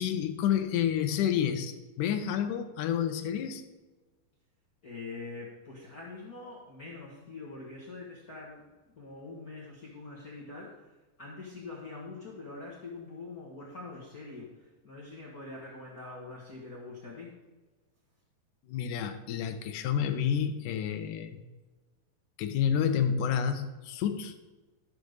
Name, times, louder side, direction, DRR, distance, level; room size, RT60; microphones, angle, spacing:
voice 1, 0.0-3.7 18.7-21.4 22.4-24.4, left 8 dB, 75° left, 7 dB, 2.1 m, -29 dB
voice 2, 4.8-8.6 9.0-10.9 11.2-17.4, left 3 dB, 50° left, -4 dB, 1.0 m, -44 dB
13.0 x 5.0 x 6.6 m, 1.2 s
omnidirectional pair, 4.3 m